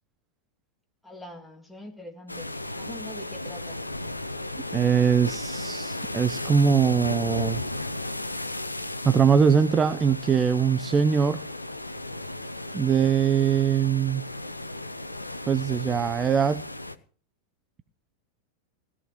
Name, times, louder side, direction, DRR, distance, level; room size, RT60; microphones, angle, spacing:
voice 1, 1.0-3.8, left 1 dB, ahead, 1 dB, 2.4 m, -43 dB
sound 1, 2.3-17.0, left 2 dB, 85° left, 0.7 m, -35 dB
voice 2, 4.7-7.6 9.0-11.4 12.7-14.2 15.5-16.6, right 7 dB, 20° right, 12 dB, 0.6 m, -22 dB
17.0 x 13.5 x 3.0 m, 0.41 s
figure-of-eight pair, 90°, 0 cm